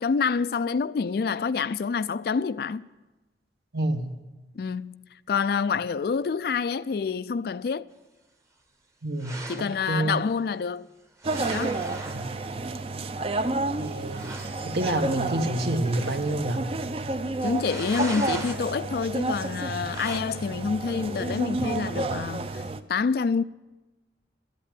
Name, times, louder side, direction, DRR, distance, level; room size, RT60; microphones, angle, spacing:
voice 1, 0.0-2.9 4.5-7.9 9.5-10.9 11.5-11.8 17.4-22.6 22.9-23.4, left 5 dB, 60° left, 0.4 m, -27 dB
voice 2, 3.7-4.1 9.0-10.1 12.1-12.2 12.5-12.7 13.8-14.3 14.6-16.7, right 1 dB, 70° right, 1.2 m, -28 dB
sound 1, 9.2-9.7 11.2-12.3 13.5-13.6 13.8-13.9 14.1-14.6 15.9-16.4 17.6-18.6 19.9-20.2, right 2 dB, 15° right, 0.9 m, -39 dB
sound 2, 11.2-22.8, right 2 dB, 35° right, 0.5 m, -31 dB
13.0 x 8.4 x 8.3 m
head